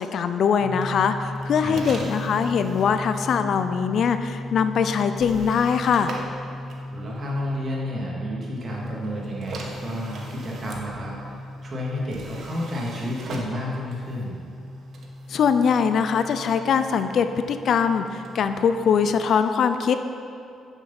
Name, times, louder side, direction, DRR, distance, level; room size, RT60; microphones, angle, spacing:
voice 1, 0.0-6.1 15.3-20.0, left 6 dB, 65° left, 9 dB, 0.5 m, -22 dB
sound 1, 0.6-19.3, left 1 dB, 15° right, 1.4 m, -37 dB
sound 2, 0.7-7.6 8.7-19.2, right 3 dB, 65° right, 1.4 m, -44 dB
voice 2, 1.6-2.0 6.9-14.3, left 1 dB, 45° right, -4 dB, 2.8 m, -31 dB
9.9 x 7.3 x 5.9 m, 2.4 s
cardioid pair, 90°, 0 cm